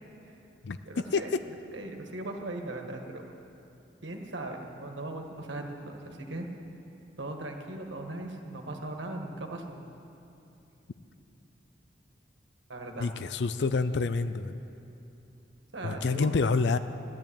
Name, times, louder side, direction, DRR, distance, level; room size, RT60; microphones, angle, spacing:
voice 1, 0.8-3.2 4.0-6.5 7.2-9.8 12.7-13.1 15.7-16.4, right 2 dB, 90° right, 3 dB, 1.7 m, -39 dB
voice 2, 13.0-14.6 15.8-16.8, left 4 dB, 70° left, 12 dB, 0.4 m, -27 dB
14.0 x 11.0 x 8.8 m, 2.8 s
head